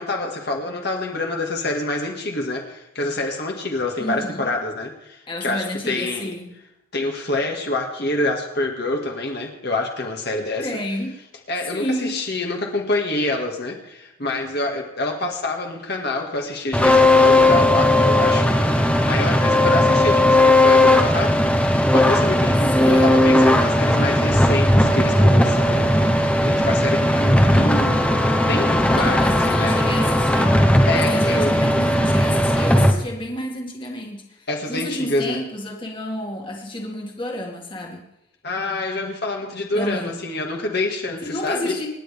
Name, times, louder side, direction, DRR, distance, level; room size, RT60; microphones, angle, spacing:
voice 1, 0.0-6.3 6.9-10.7 11.5-25.9 26.4-28.1 28.5-29.8 30.9-31.5 34.5-35.4 38.4-41.7, left 2 dB, 50° left, 0 dB, 2.0 m, -26 dB
voice 2, 4.0-4.5 5.3-6.5 10.6-11.1 11.7-12.2 22.8-23.2 28.9-30.5 30.9-38.0 39.7-40.1 41.2-41.9, left 1 dB, 25° left, 0 dB, 2.2 m, -30 dB
sound 1, 16.7-32.9, left 1 dB, 5° left, 1.0 m, -17 dB
27.0 x 10.5 x 3.5 m, 0.84 s
head